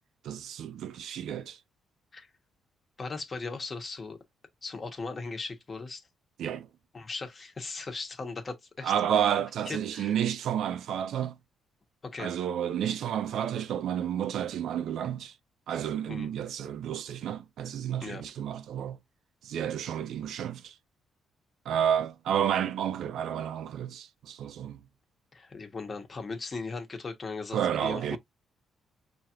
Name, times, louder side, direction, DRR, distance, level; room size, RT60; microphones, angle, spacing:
voice 1, 0.2-1.6 6.4-6.7 8.8-11.4 12.2-15.3 15.7-19.0 19.4-20.8 21.7-24.8 27.5-28.2, right 9 dB, 75° right, 0.4 m, -31 dB
voice 2, 3.0-4.2 4.6-6.1 6.9-8.9 9.7-10.1 12.0-12.3 16.1-16.3 18.0-18.2 25.3-28.2, left 4 dB, 35° left, 1.2 m, -38 dB
4.9 x 2.9 x 2.5 m
cardioid pair, 90°, 0 cm